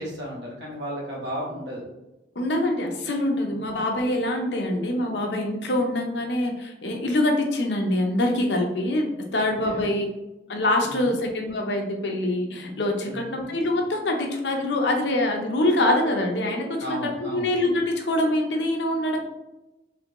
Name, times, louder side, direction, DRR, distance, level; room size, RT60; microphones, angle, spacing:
voice 1, 0.0-1.8 3.5-3.8 9.6-10.0 10.8-11.2 13.1-13.4 16.8-17.5, equal, 80° right, -3 dB, 1.4 m, -34 dB
voice 2, 2.4-10.1 10.5-19.2, left 1 dB, 80° left, 2 dB, 0.7 m, -24 dB
3.4 x 3.3 x 2.9 m, 0.98 s
head